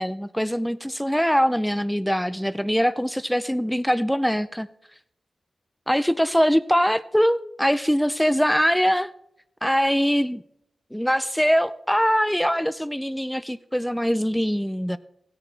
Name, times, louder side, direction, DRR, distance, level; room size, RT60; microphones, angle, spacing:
voice 1, 0.0-4.7 5.9-9.1 9.6-10.4 10.9-15.0, equal, 5° left, 0.4 m, -22 dB
15.0 x 9.7 x 3.3 m
cardioid pair, 70°, 0 cm